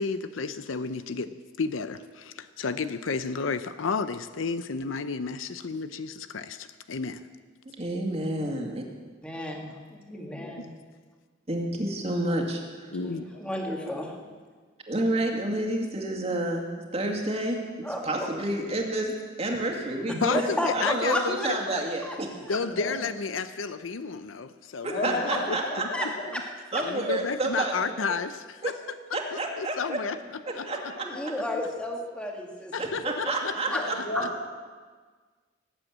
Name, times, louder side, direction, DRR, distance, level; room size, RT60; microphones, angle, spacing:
voice 1, 0.0-7.3 12.9-13.3 20.2-21.4 22.5-25.2 26.0-26.4 26.8-28.7 29.3-30.2 30.6-30.7 31.5-31.7 32.7-34.0, left 5 dB, 85° left, 12 dB, 0.6 m, -32 dB
voice 2, 7.8-8.8 11.5-12.9 14.9-20.4 20.7-22.4 24.8-25.8 26.7-28.2 28.6-28.7 29.1-30.0 30.5-31.1 32.8-34.0, right 1 dB, 30° right, 1 dB, 2.2 m, -30 dB
voice 3, 9.2-10.7 13.0-14.2 17.8-18.3 20.3-22.2 22.5-22.6 25.9-26.4 31.0-32.7 33.3-33.4 33.7-33.9, left 1 dB, 5° left, 0 dB, 1.8 m, -32 dB
voice 4, 10.1-10.7 13.0-14.3 22.6-23.0 24.9-26.3 30.4-31.3 33.4-34.5, left 1 dB, 50° left, -1 dB, 3.0 m, -36 dB
18.5 x 8.0 x 8.6 m, 1.5 s
head